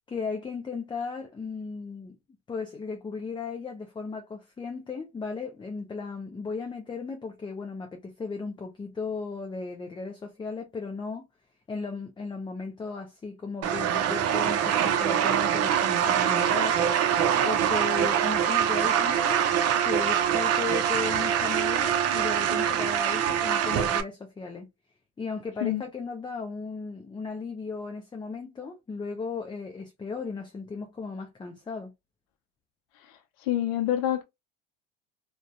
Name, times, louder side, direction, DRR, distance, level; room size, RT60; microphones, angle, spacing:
voice 1, 0.1-2.2 2.5-11.3 11.7-16.8 17.4-19.4 19.8-24.7 25.2-31.9, left 4 dB, 15° left, 0.5 m, -36 dB
sound 1, 13.6-24.0, right 9 dB, 45° right, 0.5 m, -24 dB
voice 2, 33.0-34.2, left 12 dB, 75° left, 0.5 m, -28 dB
2.4 x 2.2 x 2.4 m
supercardioid pair, 85°, 35 cm